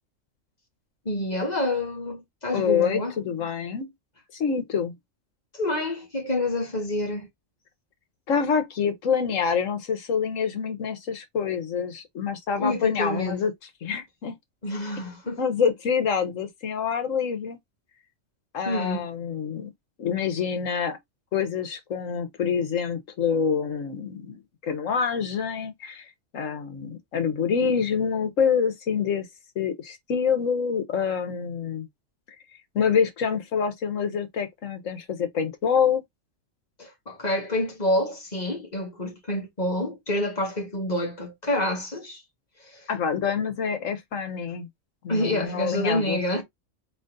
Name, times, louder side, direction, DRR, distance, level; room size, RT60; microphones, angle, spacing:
voice 1, 1.0-3.1 5.5-7.3 12.6-13.4 14.6-15.4 18.6-19.0 36.8-42.2 42.6-42.9 45.1-46.4, left 1 dB, 35° left, 1.7 m, -28 dB
voice 2, 2.5-3.9 4.3-5.0 8.3-13.5 13.8-14.4 15.4-17.6 18.5-19.7 20.0-21.0 21.3-26.0 26.3-29.3 29.5-31.9 32.7-36.0 42.9-44.7 45.0-46.2, left 6 dB, 80° left, 1.4 m, -26 dB
4.0 x 3.1 x 3.8 m
omnidirectional pair, 1.3 m